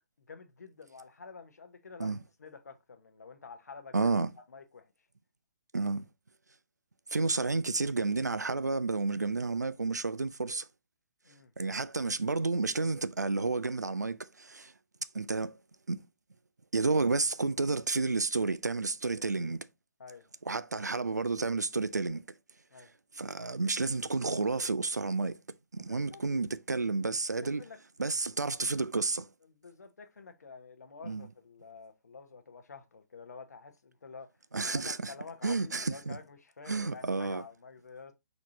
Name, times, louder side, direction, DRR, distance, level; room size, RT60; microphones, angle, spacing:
voice 1, 0.3-4.1 4.5-4.9 11.2-11.5 20.0-20.3 22.7-22.9 25.8-26.2 27.4-27.8 29.5-34.3 34.6-38.1, left 4 dB, 70° left, 0.9 m, -49 dB
voice 2, 3.9-4.3 5.7-6.1 7.1-10.7 11.6-14.7 15.1-15.6 15.9-16.0 16.7-19.6 20.5-22.2 23.2-25.4 25.7-27.6 28.0-29.3 31.0-31.2 34.5-35.1 35.4-36.2 36.7-37.4, right 3 dB, 90° right, 0.5 m, -31 dB
4.8 x 4.1 x 2.7 m
figure-of-eight pair, 135°, 9 cm